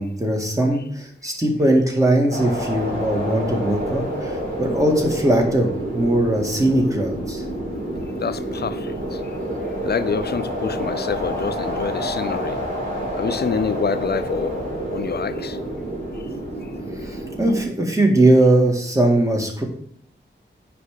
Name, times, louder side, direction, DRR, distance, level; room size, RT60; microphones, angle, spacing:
voice 1, 0.0-7.4 17.0-19.6, right 1 dB, 15° right, 0 dB, 2.0 m, -20 dB
sound 1, 2.3-17.6, equal, 50° right, 3.3 m, -28 dB
voice 2, 8.2-9.4 9.8-12.6 13.2-14.6 14.9-15.6 16.1-16.2 16.6-16.7, left 6 dB, 60° left, 12 dB, 0.6 m, -27 dB
9.5 x 3.5 x 6.5 m, 0.64 s
wide cardioid pair, 100°, 19 cm